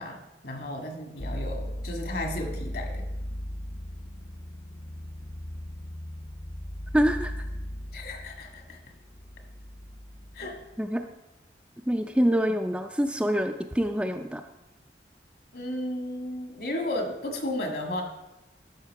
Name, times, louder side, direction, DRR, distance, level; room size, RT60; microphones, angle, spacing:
voice 1, 0.0-3.0 7.9-8.8 10.3-10.6 15.5-18.0, left 1 dB, 60° left, 3 dB, 1.7 m, -34 dB
sound 1, 1.2-10.8, equal, 35° left, 0.7 m, -37 dB
voice 2, 6.9-7.3 10.8-11.0 11.9-14.4, equal, 5° right, 5 dB, 0.4 m, -25 dB
13.0 x 5.8 x 4.6 m, 0.95 s
head